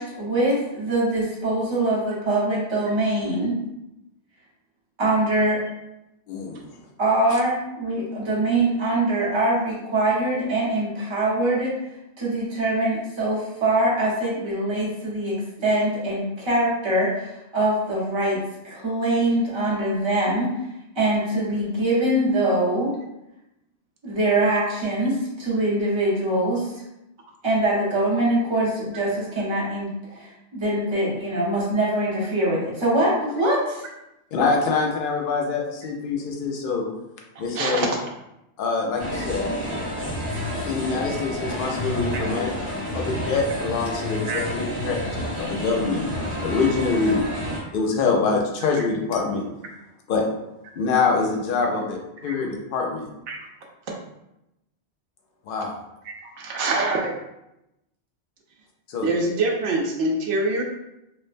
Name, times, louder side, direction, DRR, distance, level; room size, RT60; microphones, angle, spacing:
voice 1, 0.0-3.6 5.0-5.6 7.0-11.7 12.2-20.6 20.9-22.9 24.0-26.7 27.4-29.9 30.1-33.8, right 1 dB, 30° right, -6 dB, 0.8 m, -23 dB
voice 2, 6.3-6.6 34.3-36.8 37.4-37.9 38.6-39.5 40.7-42.5 42.9-45.0 45.4-46.1 46.4-47.2 47.7-49.4 50.1-50.2 50.8-53.1 55.5-55.8 58.9-59.1, left 4 dB, 60° left, 1 dB, 0.7 m, -24 dB
voice 3, 37.4-37.9 39.1-39.3 42.1-42.2 44.3-44.4 52.3-52.4 53.3-53.4 56.4-57.1 59.0-60.6, right 2 dB, 85° right, 0 dB, 0.9 m, -25 dB
sound 1, 39.0-47.6, equal, 55° right, 1.3 m, -29 dB
3.1 x 2.1 x 2.5 m, 0.89 s
omnidirectional pair, 1.2 m